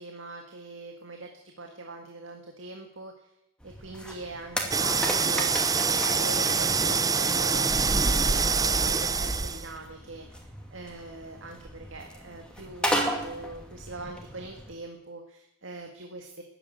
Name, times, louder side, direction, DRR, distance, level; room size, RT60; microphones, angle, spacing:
voice 1, 0.0-3.3 3.6-7.7 8.1-16.4, right 2 dB, 75° right, 3 dB, 2.0 m, -42 dB
sound 1, 3.6-14.7, equal, 5° left, 2.5 m, -36 dB
sound 2, 4.7-9.8, right 4 dB, 20° right, 0.6 m, -25 dB
14.0 x 11.0 x 9.5 m, 0.85 s
head